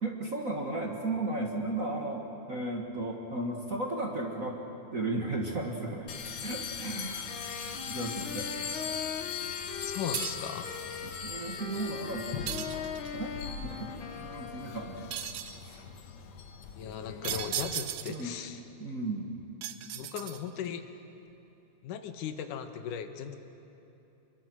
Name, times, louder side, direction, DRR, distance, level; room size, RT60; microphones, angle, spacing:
voice 1, 0.0-2.2 2.5-4.6 4.9-6.1 6.4-7.3 7.9-8.5 11.0-12.8 13.1-13.3 13.6-13.9 14.1-15.1 15.6-15.8 18.1-18.3 18.8-19.3, right 2 dB, 35° right, 0 dB, 1.6 m, -35 dB
sound 1, 6.1-17.7, left 7 dB, 70° left, 2.4 m, -40 dB
Wind instrument woodwind instrument, 7.3-15.4, left 6 dB, 50° left, 1.6 m, -41 dB
voice 2, 9.8-10.7 16.8-18.6 19.9-20.9 21.8-23.4, left 8 dB, 90° left, 8 dB, 2.7 m, -37 dB
sound 2, 10.1-10.6 12.5-13.2 15.1-15.6 17.2-18.3 19.6-20.7, right 11 dB, 75° right, 1.9 m, -36 dB
28.0 x 23.0 x 6.2 m, 2.9 s
omnidirectional pair, 3.6 m